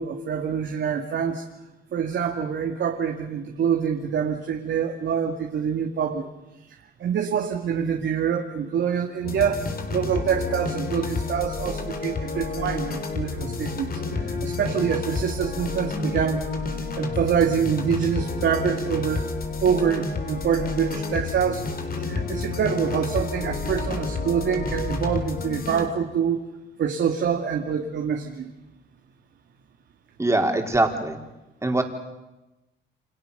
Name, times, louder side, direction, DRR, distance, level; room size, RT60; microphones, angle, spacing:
voice 1, 0.0-1.4 1.9-6.3 6.6-16.4 16.7-19.3 19.6-26.5 26.8-28.5, right 7 dB, 65° right, 2 dB, 2.4 m, -26 dB
sound 1, 9.2-25.9, left 4 dB, 50° left, 3.8 m, -30 dB
voice 2, 30.2-31.2 31.6-31.8, right 2 dB, 15° right, 3 dB, 4.5 m, -22 dB
29.5 x 26.0 x 6.9 m, 1.0 s
cardioid pair, 90°, 20 cm